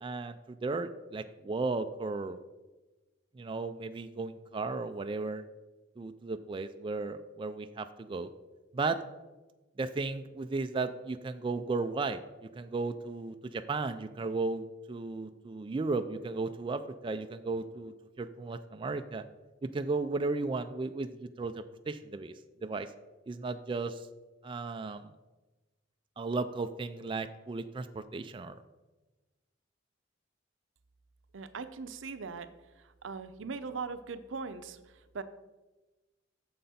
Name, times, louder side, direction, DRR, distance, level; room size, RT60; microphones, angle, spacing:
voice 1, 0.0-2.4 3.4-5.4 6.0-8.3 8.7-9.0 9.8-12.2 12.6-19.2 19.7-22.3 22.6-22.9 23.3-24.0 24.4-25.1 26.2-28.6, right 3 dB, 25° right, 8 dB, 0.3 m, -35 dB
voice 2, 31.3-32.5 32.8-35.2, right 4 dB, 80° right, 11 dB, 0.6 m, -40 dB
9.1 x 6.7 x 4.2 m, 1.1 s
head